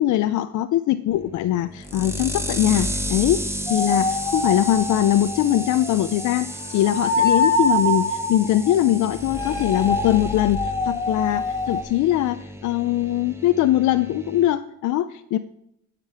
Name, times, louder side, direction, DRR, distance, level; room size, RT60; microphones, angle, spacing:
voice 1, 0.0-3.4 3.7-15.4, left 13 dB, 75° left, 10 dB, 0.6 m, -21 dB
sound 1, 1.1-14.5, equal, 10° right, 1.2 m, -33 dB
sound 2, 3.7-6.2 6.6-11.8, left 2 dB, 10° left, 1.9 m, -25 dB
9.8 x 5.3 x 7.4 m, 0.81 s
cardioid pair, 90°, 30 cm